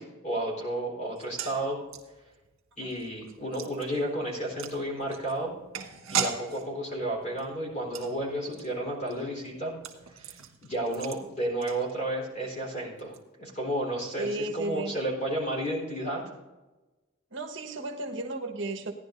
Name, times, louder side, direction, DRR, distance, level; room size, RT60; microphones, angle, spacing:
voice 1, 0.0-1.8 2.8-5.5 6.1-9.8 10.2-10.3 10.6-16.2, right 1 dB, 35° left, -2 dB, 4.1 m, -32 dB
sound 1, 1.1-12.3 12.6-12.7 13.0-13.2, right 7 dB, 75° right, 1.6 m, -39 dB
voice 2, 14.2-14.9 17.3-18.9, right 2 dB, 60° right, 1 dB, 1.4 m, -34 dB
17.5 x 11.0 x 2.6 m, 1.2 s
head